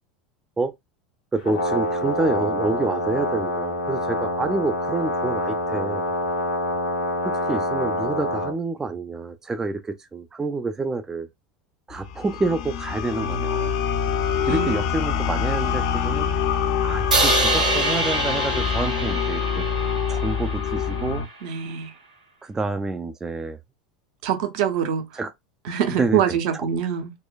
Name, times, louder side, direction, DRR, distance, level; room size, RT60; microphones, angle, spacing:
voice 1, 1.3-6.0 7.2-11.3 11.9-13.7 14.5-16.3 16.8-19.5 20.1-21.2 22.4-23.6 25.1-25.3 26.0-26.7, right 3 dB, 15° right, 0.3 m, -28 dB
Brass instrument, 1.4-8.5, left 1 dB, 80° left, 1.4 m, -26 dB
sound 1, 11.9-21.3, left 7 dB, 60° left, 0.4 m, -25 dB
voice 2, 14.5-14.9 21.4-21.9 24.2-25.2 25.6-27.1, right 9 dB, 55° right, 0.7 m, -25 dB
Crash cymbal, 17.1-21.3, right 2 dB, 80° right, 1.3 m, -25 dB
3.9 x 2.2 x 2.3 m
figure-of-eight pair, 75°, 4 cm